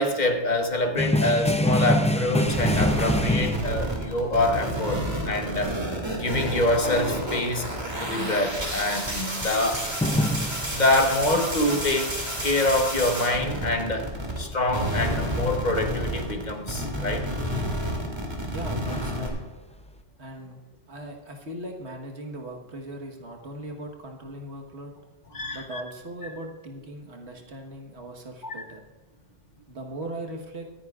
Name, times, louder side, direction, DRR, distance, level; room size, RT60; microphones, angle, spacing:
voice 1, 0.0-5.7 6.2-9.9 10.7-14.1 14.4-17.3 25.3-25.8 28.4-28.5, left 1 dB, 45° left, 5 dB, 1.1 m, -25 dB
sound 1, 1.0-4.0 6.7-7.4 7.7-10.9 18.2-19.4 20.0-20.1, left 1 dB, 10° left, 0.3 m, -26 dB
sound 2, 2.5-14.4 14.7-19.3, equal, 25° right, 2.3 m, -30 dB
voice 2, 18.5-19.4 20.2-20.6 20.9-24.9 25.5-28.8 29.7-30.7, right 1 dB, 80° right, 2 dB, 1.7 m, -39 dB
24.5 x 9.5 x 2.4 m, 1.1 s
omnidirectional pair, 1.1 m